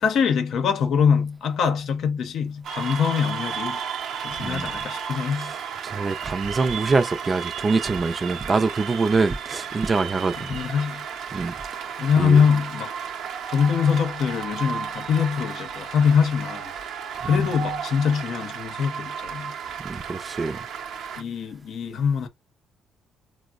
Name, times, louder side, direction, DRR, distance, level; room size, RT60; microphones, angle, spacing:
voice 1, 0.0-3.8 4.2-5.5 10.4-11.0 12.0-12.9 13.5-16.7 17.3-19.5 21.2-22.3, left 6 dB, 70° left, 0.7 m, -23 dB
Cheering / Applause, 2.6-21.2, right 7 dB, 75° right, 0.6 m, -33 dB
voice 2, 4.4-4.7 5.8-10.6 11.3-11.5 12.2-12.4 17.2-17.4 19.8-20.6, right 4 dB, 30° right, 0.4 m, -24 dB
4.4 x 2.1 x 2.4 m
cardioid pair, 90°, 0 cm